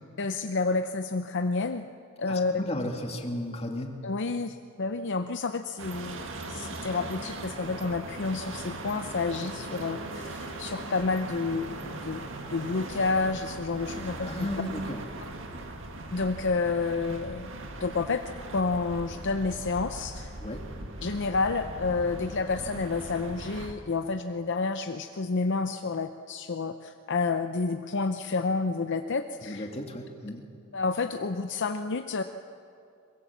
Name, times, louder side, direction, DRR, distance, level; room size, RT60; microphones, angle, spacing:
voice 1, 0.2-1.9 2.2-2.6 4.0-14.5 16.1-17.5 17.8-18.2 18.5-20.3 21.0-29.7 30.7-32.2, left 4 dB, 60° left, 8 dB, 0.7 m, -30 dB
voice 2, 2.2-4.0 14.2-15.0 20.4-20.6 29.4-30.4, left 1 dB, 30° left, 2 dB, 2.3 m, -34 dB
sound 1, 5.8-23.7, right 2 dB, 65° right, 2.0 m, -39 dB
23.0 x 22.0 x 7.3 m, 2.5 s
head